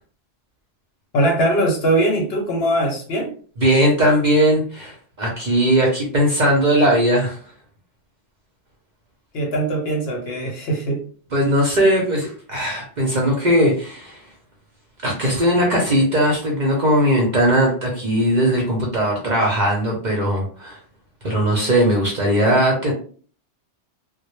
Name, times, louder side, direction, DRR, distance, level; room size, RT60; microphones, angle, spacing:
voice 1, 1.1-3.3 9.3-11.0, right 1 dB, 60° left, 1 dB, 0.8 m, -21 dB
voice 2, 3.6-7.4 11.3-14.2 15.0-20.8 21.2-22.9, equal, 45° right, -1 dB, 0.6 m, -19 dB
2.1 x 2.1 x 3.0 m, 0.43 s
omnidirectional pair, 1.3 m